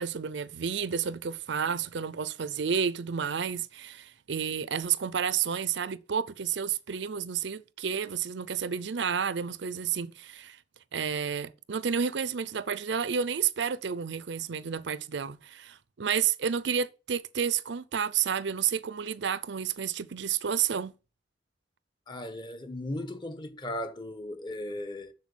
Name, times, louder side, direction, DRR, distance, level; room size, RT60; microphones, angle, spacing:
voice 1, 0.0-10.6 10.9-20.9, right 7 dB, 65° right, 0.5 m, -31 dB
voice 2, 22.1-25.1, left 1 dB, 25° left, 1.1 m, -37 dB
7.4 x 6.7 x 7.2 m
head